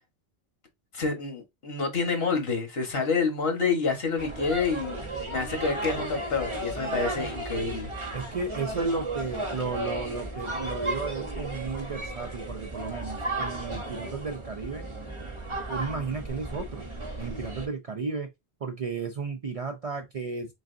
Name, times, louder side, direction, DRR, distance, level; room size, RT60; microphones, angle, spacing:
voice 1, 0.9-7.9, left 4 dB, 70° left, 1.3 m, -28 dB
sound 1, 4.2-17.7, right 2 dB, 30° right, 0.8 m, -34 dB
voice 2, 8.1-14.9 15.7-16.9 17.2-18.3 18.6-20.5, right 4 dB, 50° right, 0.4 m, -33 dB
3.9 x 3.6 x 2.5 m
omnidirectional pair, 1.0 m